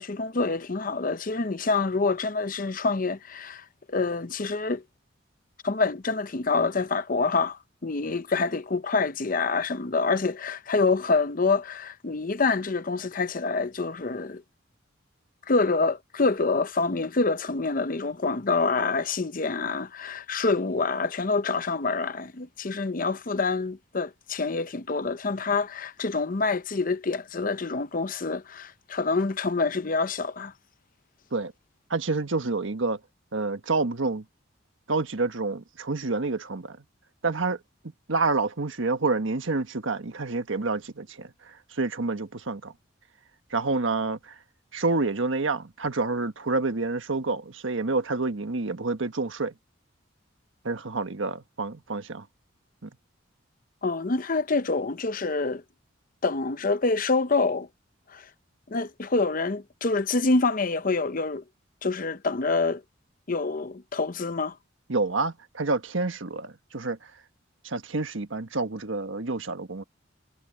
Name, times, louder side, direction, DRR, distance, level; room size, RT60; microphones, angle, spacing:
voice 1, 0.0-4.8 5.6-14.4 15.5-30.5 53.8-55.6 56.2-57.7 58.1-58.3 58.7-61.4 61.8-62.8 63.3-64.6, left 3 dB, 45° left, 0.7 m, -26 dB
voice 2, 31.9-33.0 33.3-34.2 34.9-36.8 37.2-37.6 38.1-42.7 43.5-44.4 44.7-49.5 50.6-52.3 52.8-52.9 64.9-67.2 67.6-69.8, right 3 dB, 80° right, 1.4 m, -28 dB
head